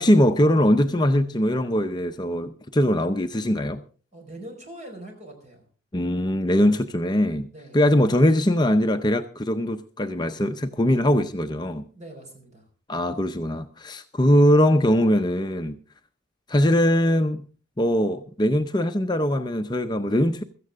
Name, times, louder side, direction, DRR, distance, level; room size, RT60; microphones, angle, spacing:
voice 1, 0.0-3.8 5.9-7.5 7.7-11.8 12.9-15.8 16.5-17.5 17.8-20.4, equal, 25° left, 0.6 m, -21 dB
voice 2, 4.1-5.7 7.5-7.8 11.9-12.6, right 1 dB, 40° right, 4.9 m, -42 dB
16.0 x 14.5 x 3.6 m
head